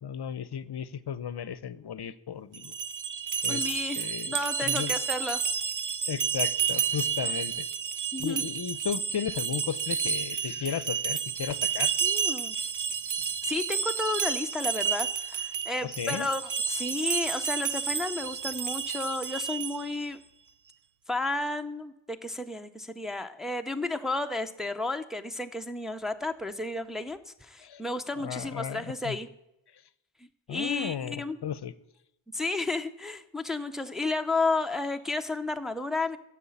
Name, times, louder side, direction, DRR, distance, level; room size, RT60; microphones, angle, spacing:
voice 1, 0.0-2.7 3.4-3.6 4.0-4.9 6.1-7.7 8.2-12.0 15.8-16.3 27.6-27.8 28.2-29.2 30.5-31.7, left 8 dB, 55° left, 16 dB, 0.7 m, -35 dB
sound 1, 2.5-20.0, right 7 dB, 40° right, 0.6 m, -31 dB
voice 2, 3.5-5.4 8.1-8.4 12.0-12.6 13.4-20.2 21.1-29.3 30.5-31.4 32.3-36.2, left 2 dB, ahead, 5 dB, 0.6 m, -32 dB
9.8 x 7.5 x 8.5 m, 0.87 s
wide cardioid pair, 105°, 49 cm